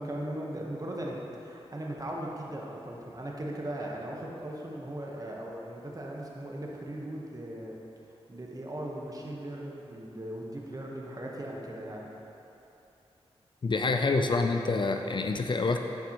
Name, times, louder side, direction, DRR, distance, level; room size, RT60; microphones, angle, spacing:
voice 1, 0.0-7.7 8.3-12.1 13.9-14.0, right 1 dB, 35° right, -2 dB, 1.1 m, -38 dB
voice 2, 13.6-15.8, left 3 dB, 45° left, 5 dB, 0.4 m, -27 dB
11.0 x 4.7 x 3.0 m, 2.9 s
cardioid pair, 50°, 11 cm